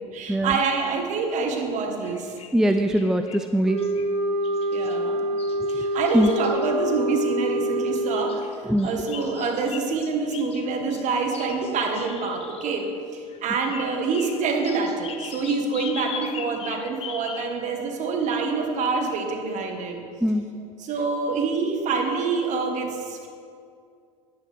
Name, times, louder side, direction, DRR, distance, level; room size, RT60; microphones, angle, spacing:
voice 1, 0.1-2.3 4.7-5.3 5.7-12.9 13.1-20.1 20.8-23.3, right 4 dB, 45° right, 3 dB, 1.7 m, -26 dB
sound 1, 2.0-3.4 3.8-4.1 4.4-6.7 7.9-12.9 13.3-17.6 18.3-18.4 18.8-18.9, left 7 dB, 35° left, 0.8 m, -41 dB
voice 2, 2.5-3.9 5.7-5.9 6.1-6.3 8.7-8.9 20.2-20.5, equal, 5° right, 7 dB, 0.4 m, -21 dB
sound 2, 3.6-8.5, right 1 dB, 70° right, 1.5 m, -26 dB
10.5 x 9.8 x 3.6 m, 2.3 s
hypercardioid pair, 85°, 17 cm